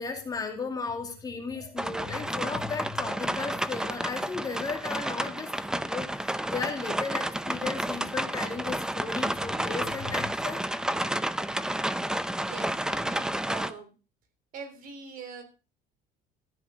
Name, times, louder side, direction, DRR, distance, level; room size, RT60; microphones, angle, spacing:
voice 1, 0.0-10.6, left 4 dB, 20° left, 3 dB, 2.6 m, -35 dB
sound 1, 1.8-13.7, right 1 dB, 5° right, 0.6 m, -31 dB
voice 2, 12.4-13.9 14.5-15.4, right 5 dB, 50° right, 7 dB, 3.3 m, -43 dB
14.0 x 8.2 x 5.0 m, 0.33 s
cardioid pair, 140°, 17 cm